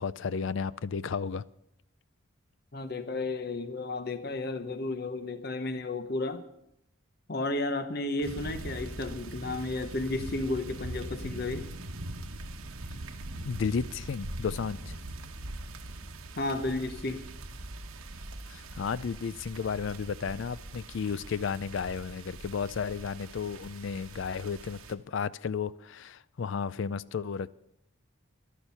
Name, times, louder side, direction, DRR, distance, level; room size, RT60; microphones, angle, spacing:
voice 1, 0.0-1.4 13.4-15.0 18.5-27.5, left 6 dB, 65° left, 0.4 m, -33 dB
voice 2, 2.7-6.4 7.3-11.7 16.4-17.3, left 2 dB, 45° left, 0.9 m, -33 dB
sound 1, 8.2-24.9, right 2 dB, 85° right, 1.2 m, -42 dB
12.5 x 12.0 x 5.7 m
head